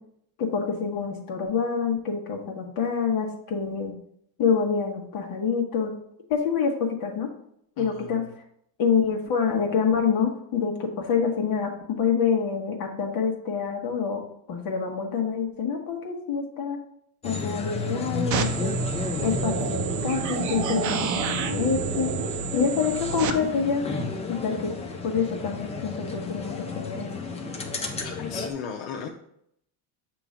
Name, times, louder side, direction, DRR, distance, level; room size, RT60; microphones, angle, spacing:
voice 1, 0.4-3.9 4.4-5.9 6.3-7.3 7.8-8.2 8.8-14.2 14.5-16.8 17.2-18.7 19.2-22.2 22.5-23.8 24.3-24.7 25.0-27.1, left 6 dB, 45° left, 1 dB, 1.3 m, -26 dB
voice 2, 7.8-8.2 28.0-29.1, left 6 dB, 70° left, 1 dB, 0.8 m, -36 dB
sound 1, 17.2-28.5, left 3 dB, 15° left, 0.3 m, -32 dB
sound 2, 18.3-23.3, right 8 dB, 40° right, 0.6 m, -29 dB
6.8 x 3.0 x 5.0 m, 0.71 s
cardioid pair, 150°, 47 cm